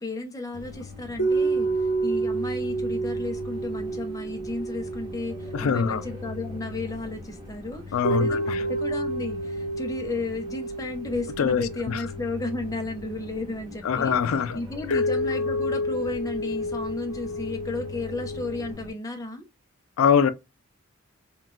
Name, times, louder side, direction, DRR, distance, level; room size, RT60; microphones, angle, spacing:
voice 1, 0.0-14.2 14.5-19.4, left 2 dB, 15° left, 0.5 m, -33 dB
sound 1, 0.5-18.9, left 3 dB, 20° right, 0.8 m, -41 dB
sound 2, 1.2-6.6 8.0-13.5 14.9-18.7, right 1 dB, 55° left, 1.1 m, -30 dB
voice 2, 5.5-6.0 7.9-8.6 11.4-12.0 13.8-14.6 14.9-15.0 20.0-20.3, left 7 dB, 85° left, 0.3 m, -23 dB
3.8 x 2.3 x 2.3 m
head